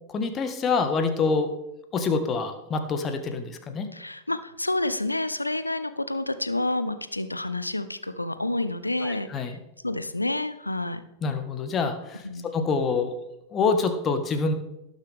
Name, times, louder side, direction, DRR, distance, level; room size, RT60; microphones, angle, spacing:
voice 1, 0.1-1.5 1.9-3.9 9.0-9.6 11.2-12.3 12.5-13.2 13.5-14.5, left 4 dB, 25° left, 7 dB, 1.4 m, -26 dB
voice 2, 3.9-9.3 9.8-11.0 12.2-12.5, left 2 dB, 85° left, 12 dB, 0.6 m, -29 dB
18.0 x 6.6 x 3.5 m, 0.88 s
figure-of-eight pair, 90°, 0 cm